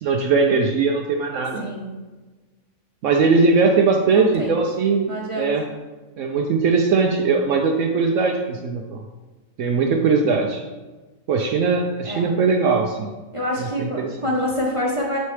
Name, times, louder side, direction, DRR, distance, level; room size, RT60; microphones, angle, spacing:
voice 1, 0.0-1.7 3.0-5.7 6.2-9.0 9.6-10.6 11.3-13.1 13.6-14.2, right 4 dB, 70° right, 2 dB, 0.9 m, -20 dB
voice 2, 1.6-1.9 4.1-4.5 5.1-5.5 12.0-12.2 13.3-15.2, left 1 dB, 25° right, -3 dB, 0.8 m, -26 dB
8.1 x 4.2 x 3.2 m, 1.3 s
omnidirectional pair, 1.5 m